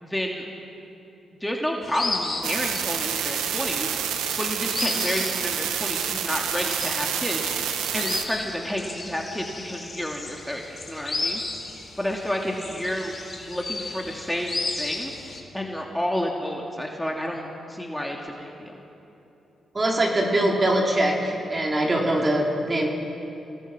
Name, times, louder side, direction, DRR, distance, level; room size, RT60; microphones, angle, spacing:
voice 1, 0.0-0.5 1.4-3.9 4.4-7.5 7.9-10.6 10.9-11.4 12.0-13.2 13.5-15.1 15.5-18.8, equal, 5° left, 0 dB, 2.9 m, -30 dB
sound 1, 1.8-15.4, left 3 dB, 35° left, 3.9 m, -34 dB
sound 2, 2.4-8.2, right 9 dB, 90° right, 1.2 m, -28 dB
voice 2, 19.7-22.9, right 1 dB, 30° right, -1 dB, 4.6 m, -22 dB
26.5 x 19.0 x 6.3 m, 2.9 s
supercardioid pair, 55°, 0 cm